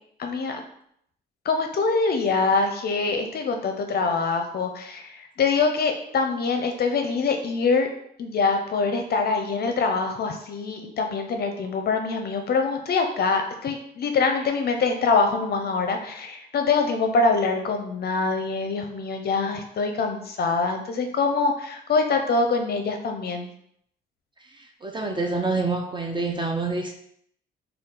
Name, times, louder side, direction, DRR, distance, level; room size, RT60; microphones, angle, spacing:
voice 1, 0.2-0.6 1.4-7.9 8.2-23.5, left 4 dB, 50° left, 5 dB, 0.5 m, -24 dB
voice 2, 24.5-27.0, right 3 dB, 25° right, 2 dB, 0.5 m, -27 dB
4.0 x 2.3 x 3.7 m, 0.70 s
cardioid pair, 90°, 20 cm